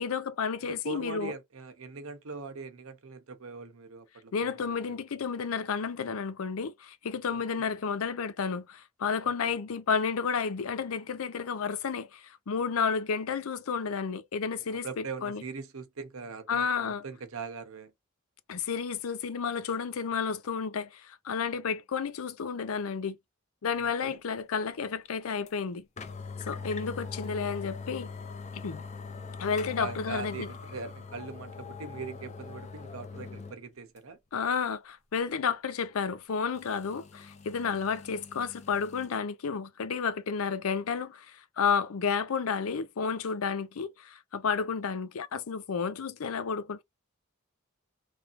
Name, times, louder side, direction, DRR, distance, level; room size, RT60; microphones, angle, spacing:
voice 1, 0.0-1.3 4.3-15.4 16.5-17.0 18.5-23.2 23.6-25.8 26.4-28.1 28.5-28.8 29.4-30.5 34.3-46.8, left 6 dB, 85° left, 0.5 m, -31 dB
voice 2, 0.7-5.0 7.3-7.7 9.2-9.5 14.7-17.9 23.8-24.2 26.6-26.7 29.8-34.2, right 4 dB, 80° right, 0.8 m, -41 dB
sound 1, 25.5-25.6 26.0-33.6 34.0-34.1 36.6-39.2, left 4 dB, 35° left, 0.5 m, -42 dB
3.1 x 2.7 x 2.5 m
head